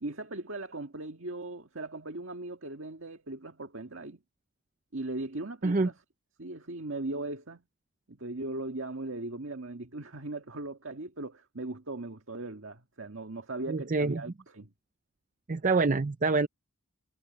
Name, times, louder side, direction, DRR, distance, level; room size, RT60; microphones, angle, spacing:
voice 1, 0.0-4.2 4.9-6.0 6.4-7.6 8.1-14.7, right 2 dB, 70° right, 1.8 m, -38 dB
voice 2, 13.7-14.2 15.5-16.5, right 3 dB, 40° right, 0.5 m, -26 dB
head